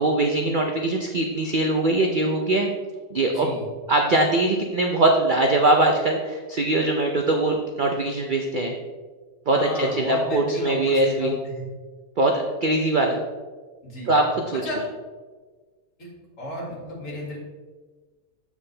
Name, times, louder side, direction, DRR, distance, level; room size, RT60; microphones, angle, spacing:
voice 1, 0.0-2.7 3.1-3.5 3.9-8.7 9.5-11.3 12.2-13.2 14.1-14.6, right 2 dB, 60° right, 2 dB, 0.5 m, -22 dB
voice 2, 3.3-3.7 9.5-11.6 13.8-14.1 14.6-14.8 16.4-17.4, left 1 dB, 55° left, -4 dB, 2.5 m, -33 dB
7.7 x 6.2 x 3.3 m, 1.4 s
omnidirectional pair, 1.7 m